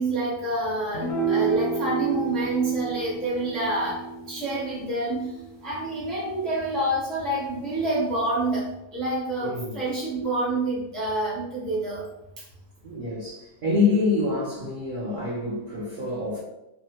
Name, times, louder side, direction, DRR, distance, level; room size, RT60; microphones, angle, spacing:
voice 1, 0.0-4.0 4.3-5.2 5.6-8.6 8.9-12.0, right 2 dB, ahead, -7 dB, 0.4 m, -27 dB
sound 1, 0.9-7.5, right 5 dB, 60° left, 0.8 m, -31 dB
voice 2, 9.4-9.8 12.8-16.4, left 3 dB, 70° right, -5 dB, 0.5 m, -26 dB
2.7 x 2.0 x 2.8 m, 0.91 s
omnidirectional pair, 1.6 m